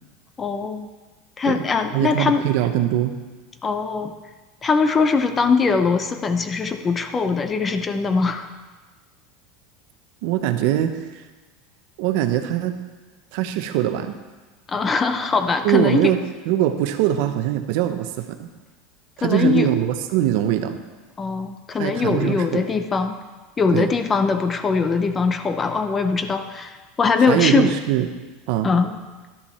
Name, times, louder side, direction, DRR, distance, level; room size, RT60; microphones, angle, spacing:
voice 1, 0.4-0.9 1.4-2.5 3.6-4.1 4.6-8.5 14.7-16.1 19.2-19.7 21.2-23.2 23.6-27.7 28.6-29.0, left 4 dB, 15° left, 9 dB, 0.5 m, -21 dB
voice 2, 1.9-3.1 10.2-11.2 12.0-12.8 13.3-14.2 15.6-16.2 16.5-18.5 19.2-20.8 21.8-22.7 23.7-23.9 27.3-28.1 28.5-28.7, right 12 dB, 60° right, 8 dB, 0.7 m, -22 dB
11.0 x 7.4 x 4.3 m, 1.3 s
supercardioid pair, 165°, 0 cm